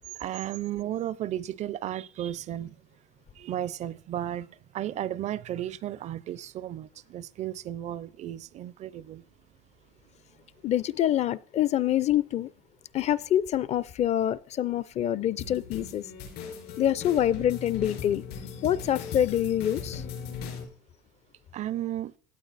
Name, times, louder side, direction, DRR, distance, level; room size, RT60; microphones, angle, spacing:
voice 1, 0.1-2.7 3.4-4.5 4.7-9.2 21.5-22.1, right 12 dB, 45° right, 0.5 m, -34 dB
voice 2, 10.6-12.5 12.9-16.0 16.8-18.2 18.6-20.0, left 11 dB, 45° left, 0.6 m, -26 dB
sound 1, 15.4-20.6, left 6 dB, 75° left, 5.4 m, -38 dB
16.5 x 8.9 x 4.1 m
cardioid pair, 130°, 16 cm